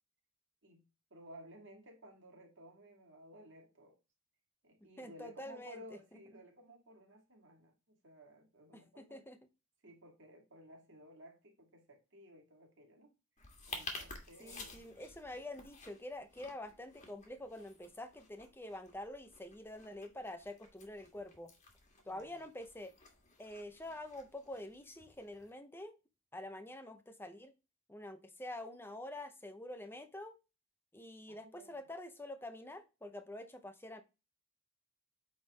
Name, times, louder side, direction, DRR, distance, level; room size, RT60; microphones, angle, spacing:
voice 1, 1.1-4.0 4.6-9.3 9.8-13.1 13.7-14.9 22.0-22.5 31.3-31.9, equal, 55° right, 2.2 m, -56 dB
voice 2, 5.0-5.8 8.7-9.5 14.4-21.5 22.1-22.9 23.4-26.0 26.3-27.5 27.9-30.4 30.9-34.0, left 1 dB, 10° left, 0.7 m, -47 dB
sound 1, 13.4-25.5, left 3 dB, 35° left, 1.6 m, -52 dB
8.3 x 3.7 x 4.1 m
head